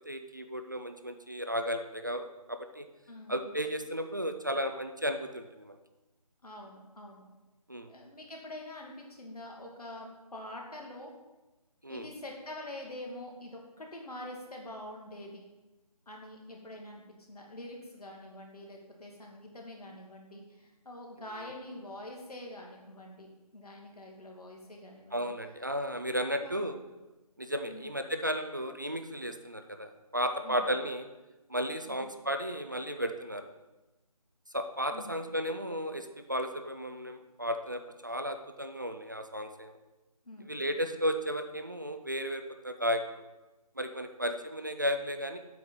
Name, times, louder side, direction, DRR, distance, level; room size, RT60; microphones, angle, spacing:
voice 1, 0.1-2.9 3.3-5.8 7.7-7.9 11.8-12.1 25.1-26.8 27.4-31.1 31.5-33.4 34.5-39.8 40.5-43.2 43.8-45.4, equal, 30° right, 7 dB, 0.4 m, -34 dB
voice 2, 3.1-3.6 6.4-7.2 7.9-11.1 11.9-15.5 16.1-17.0 17.3-25.3 25.8-25.9 26.2-26.6 27.6-27.9 30.4-30.7 31.8-32.1 34.9-35.2 40.3-40.6, left 1 dB, 75° left, 0 dB, 2.2 m, -45 dB
8.2 x 4.9 x 5.6 m, 1.1 s
figure-of-eight pair, 165°, 20 cm